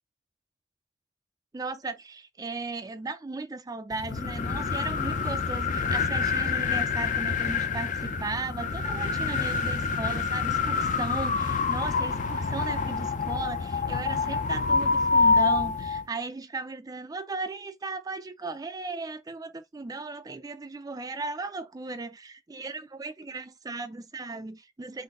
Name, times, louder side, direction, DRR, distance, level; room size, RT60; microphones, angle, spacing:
voice 1, 1.5-25.0, right 3 dB, 20° right, 0.4 m, -36 dB
sound 1, 3.9-16.1, left 4 dB, 45° left, 0.5 m, -27 dB
3.9 x 2.5 x 3.6 m
head